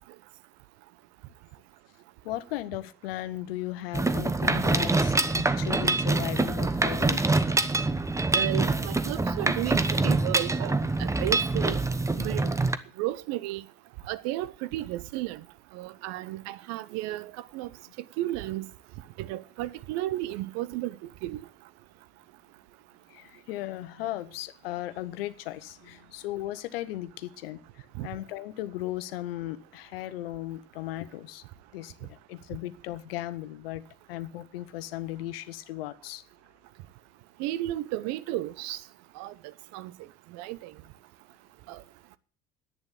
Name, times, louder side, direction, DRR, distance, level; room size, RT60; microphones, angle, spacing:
voice 1, 2.2-7.6 7.8-8.2 23.1-31.4 31.7-33.8 34.1-36.2, left 15 dB, 70° left, 1.0 m, -37 dB
Mechanisms, 3.9-12.8, right 3 dB, 10° right, 1.0 m, -25 dB
voice 2, 8.3-11.8 12.2-12.5 13.0-13.6 14.1-15.4 15.7-17.7 18.2-18.7 19.2-21.4 28.0-28.1 37.4-38.8 39.2-39.3 39.7-39.9 40.3-40.7 41.7-41.8, right 16 dB, 60° right, 0.9 m, -33 dB
10.5 x 8.9 x 8.3 m
hypercardioid pair, 65°, 30 cm